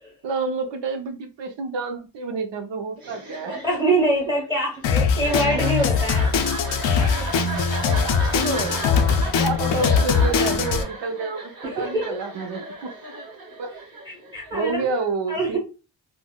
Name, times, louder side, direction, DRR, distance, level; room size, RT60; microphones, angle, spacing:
voice 1, 0.2-3.5 8.3-8.8 9.4-12.9 13.6-13.8 14.5-15.6, right 4 dB, 70° right, 6 dB, 0.7 m, -28 dB
sound 1, 3.0-14.7, right 2 dB, 50° right, 1.0 m, -35 dB
voice 2, 3.5-6.3 11.6-12.2 14.0-14.9 15.3-15.6, right 1 dB, 10° right, -3 dB, 1.1 m, -24 dB
Drum kit, 4.8-10.8, left 6 dB, 75° left, 0.5 m, -21 dB
3.8 x 2.1 x 2.2 m, 0.32 s
wide cardioid pair, 150°, 46 cm